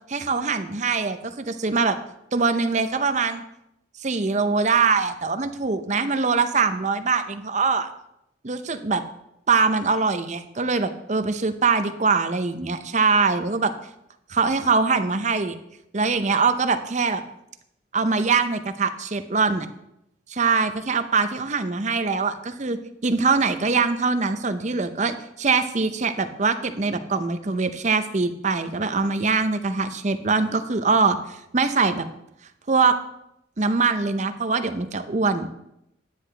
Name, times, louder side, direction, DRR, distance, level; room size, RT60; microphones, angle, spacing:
voice 1, 0.1-2.0 2.3-3.4 4.0-7.9 8.4-9.0 9.5-13.7 14.3-15.6 15.9-17.2 17.9-19.7 20.3-32.0 32.7-32.9 33.6-35.5, right 4 dB, 35° right, 10 dB, 0.6 m, -23 dB
10.0 x 9.5 x 3.3 m, 0.81 s
head